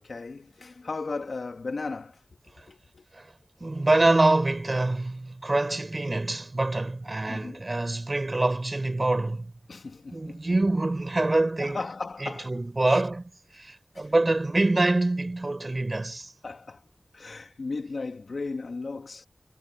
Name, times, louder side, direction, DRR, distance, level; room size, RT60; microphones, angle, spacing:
voice 1, 0.0-2.2 2.6-3.1 7.3-7.6 9.7-10.5 11.6-12.6 12.9-13.0 13.9-14.1 16.4-16.9 17.1-19.3, left 3 dB, 85° left, 2.4 m, -36 dB
voice 2, 3.6-9.5 10.1-11.8 12.2-16.3, right 2 dB, 40° right, 5.4 m, -25 dB
wide cardioid pair, 80°, 0 cm